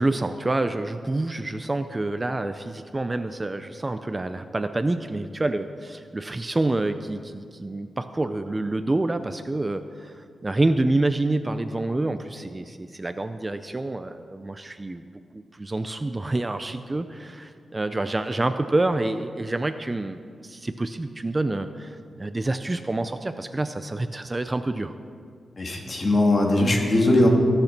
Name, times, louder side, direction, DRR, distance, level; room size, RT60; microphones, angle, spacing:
voice 1, 0.0-15.0 15.3-24.9, right 2 dB, 25° right, 10 dB, 0.5 m, -27 dB
voice 2, 25.6-27.3, left 1 dB, 40° left, 0 dB, 2.4 m, -20 dB
19.5 x 6.7 x 5.9 m, 2.3 s
cardioid pair, 90°, 0 cm